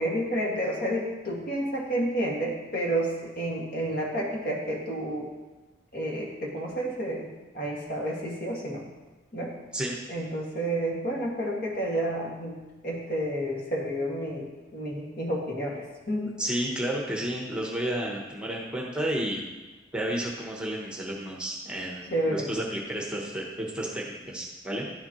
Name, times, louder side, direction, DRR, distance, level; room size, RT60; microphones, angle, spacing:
voice 1, 0.0-5.3 5.9-7.3 7.5-8.8 9.3-9.5 10.1-12.5 12.8-16.3 22.1-22.5, right 1 dB, 55° left, -3 dB, 2.0 m, -30 dB
voice 2, 16.4-19.4 19.9-24.9, right 1 dB, 5° right, -2 dB, 1.0 m, -31 dB
11.0 x 7.2 x 3.0 m, 1.2 s
head